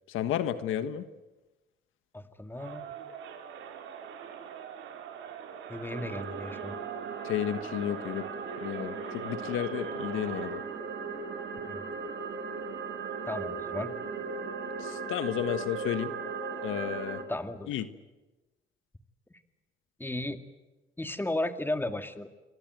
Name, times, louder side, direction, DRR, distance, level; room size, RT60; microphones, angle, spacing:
voice 1, 0.1-1.0 7.2-8.3 8.6-10.6 14.8-16.1 16.6-17.2 17.7-17.9, left 10 dB, 90° left, 11 dB, 1.5 m, -32 dB
voice 2, 2.1-2.9 5.7-6.8 11.7-11.8 13.3-13.9 17.3-17.7 19.3-19.4 20.0-20.4 21.0-22.3, left 1 dB, 10° left, 8 dB, 2.2 m, -34 dB
Crowd, 2.5-10.7, right 8 dB, 85° right, 4.4 m, -44 dB
sound 1, 5.9-17.2, right 4 dB, 65° right, 4.9 m, -37 dB
27.5 x 23.5 x 8.0 m, 1.1 s
cardioid pair, 90°, 20 cm